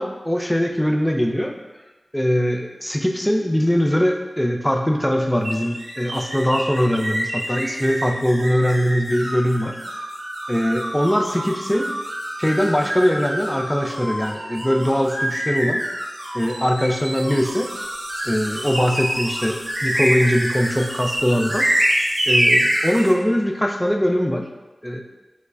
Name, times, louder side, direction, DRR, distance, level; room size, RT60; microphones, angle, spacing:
voice 1, 0.0-1.5 2.1-9.8 10.5-11.9 12.4-15.8 16.3-17.7 18.2-21.9 22.3-24.5 24.8-25.0, equal, 5° left, 3 dB, 0.3 m, -21 dB
sound 1, 5.4-23.1, equal, 65° right, 0.7 m, -26 dB
4.7 x 2.0 x 2.4 m, 1.1 s
wide cardioid pair, 65°, 0 cm